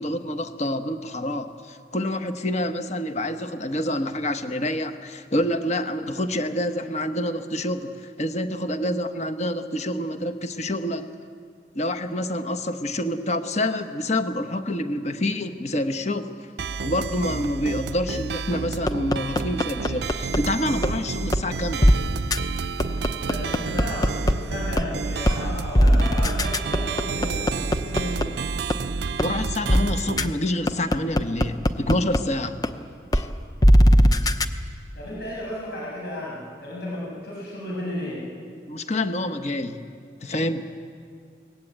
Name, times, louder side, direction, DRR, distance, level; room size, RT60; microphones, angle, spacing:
voice 1, 0.0-11.1 11.7-16.4 16.8-21.9 29.2-32.6 33.1-33.3 34.2-34.3 38.7-39.8 40.2-40.7, left 1 dB, 40° left, 8 dB, 1.1 m, -27 dB
sound 1, 16.6-30.3, right 4 dB, 70° right, 0.5 m, -30 dB
sound 2, 18.9-20.4 20.8-20.9 21.3-21.4 21.8-21.9 22.3-22.4 22.8-24.3 24.8-24.9 25.3-25.4 25.8-28.2 28.7-28.8 29.2-29.3 29.7-29.8 30.2-30.3 30.7-32.2 32.6-32.7 33.1-33.2 33.6-34.5, equal, 20° left, 0.8 m, -18 dB
voice 2, 23.1-28.3 34.9-38.2, left 1 dB, 65° left, -5 dB, 7.6 m, -33 dB
23.0 x 19.0 x 8.8 m, 2.2 s
head